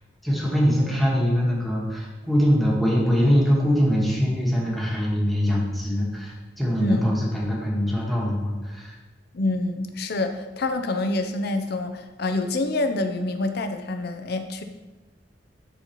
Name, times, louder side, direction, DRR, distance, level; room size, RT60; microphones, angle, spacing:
voice 1, 0.2-8.9, equal, ahead, -5 dB, 1.5 m, -23 dB
voice 2, 9.3-14.6, left 2 dB, 60° left, 7 dB, 0.6 m, -26 dB
10.5 x 4.1 x 3.0 m, 1.2 s
head